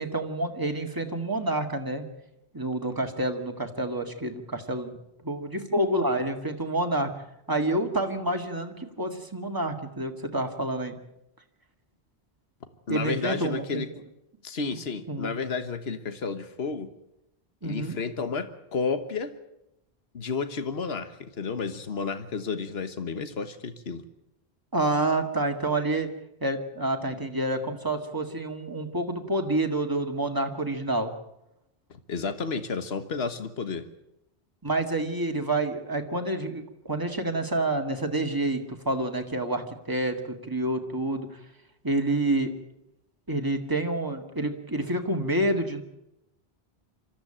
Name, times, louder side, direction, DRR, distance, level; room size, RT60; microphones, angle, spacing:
voice 1, 0.0-2.1 2.5-5.0 5.2-7.1 7.5-11.0 12.9-13.9 15.1-15.3 17.6-18.0 24.7-26.1 26.4-31.1 34.6-41.3 41.8-42.5 43.3-45.8, right 1 dB, 20° right, 4 dB, 1.9 m, -28 dB
voice 2, 12.9-13.9 14.4-16.9 17.6-19.3 20.1-24.0 31.9-33.9, left 5 dB, 70° left, 10 dB, 1.6 m, -31 dB
25.5 x 14.0 x 8.8 m, 0.85 s
omnidirectional pair, 1.1 m